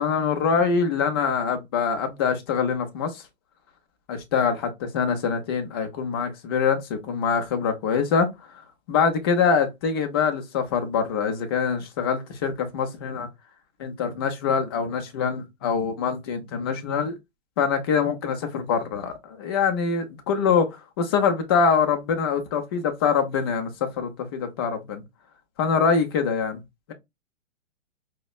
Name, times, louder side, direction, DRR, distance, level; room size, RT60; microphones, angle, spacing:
voice 1, 0.0-3.2 4.1-8.3 8.9-13.3 13.8-17.2 17.6-25.0 25.6-26.6, left 6 dB, 20° left, 0.4 m, -24 dB
4.8 x 2.1 x 2.3 m
figure-of-eight pair, 125°, 40 cm